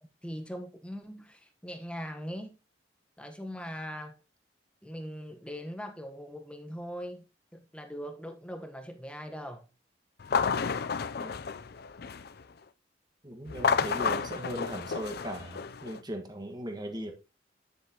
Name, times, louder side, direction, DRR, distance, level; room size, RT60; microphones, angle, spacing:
voice 1, 0.2-2.6 3.2-4.2 4.8-7.2 7.5-9.7, equal, 5° left, 1.2 m, -40 dB
sound 1, 10.2-12.4 13.5-16.0, left 5 dB, 60° left, 0.5 m, -31 dB
voice 2, 13.2-17.1, right 1 dB, 25° right, 1.6 m, -38 dB
9.4 x 8.2 x 3.0 m
head